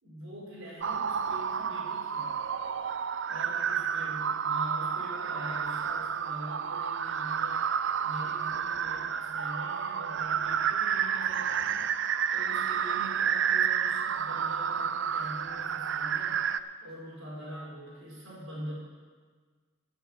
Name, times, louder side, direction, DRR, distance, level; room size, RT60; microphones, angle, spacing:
voice 1, 0.0-2.3 3.3-7.6 8.0-18.8, equal, 80° right, -5 dB, 5.0 m, -44 dB
sound 1, 0.8-16.6, right 7 dB, 60° right, 0.4 m, -30 dB
13.0 x 8.0 x 7.3 m, 1.5 s
head